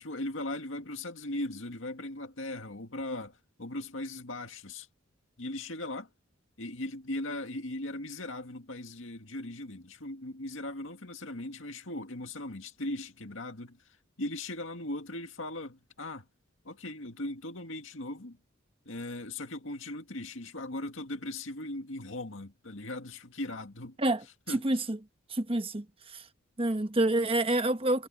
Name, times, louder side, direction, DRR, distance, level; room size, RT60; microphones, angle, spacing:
voice 1, 0.0-4.9 5.4-6.1 6.6-13.8 14.2-16.3 16.6-18.4 18.9-24.0 24.5-24.8, left 1 dB, 70° left, 2.2 m, -38 dB
voice 2, 24.5-25.0 25.3-25.8 26.1-26.2 26.6-28.1, right 1 dB, 30° right, 1.2 m, -27 dB
head